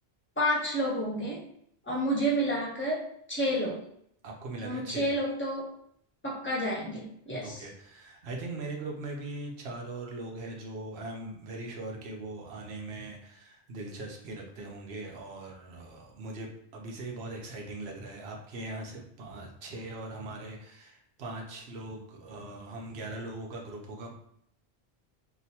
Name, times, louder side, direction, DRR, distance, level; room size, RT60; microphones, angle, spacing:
voice 1, 0.4-1.4 1.9-3.9 4.6-5.7 6.2-7.6, equal, 15° left, -5 dB, 0.7 m, -30 dB
voice 2, 4.2-5.2 7.4-24.2, right 2 dB, 70° right, 0 dB, 0.9 m, -40 dB
2.9 x 2.0 x 2.7 m, 0.70 s
omnidirectional pair, 1.1 m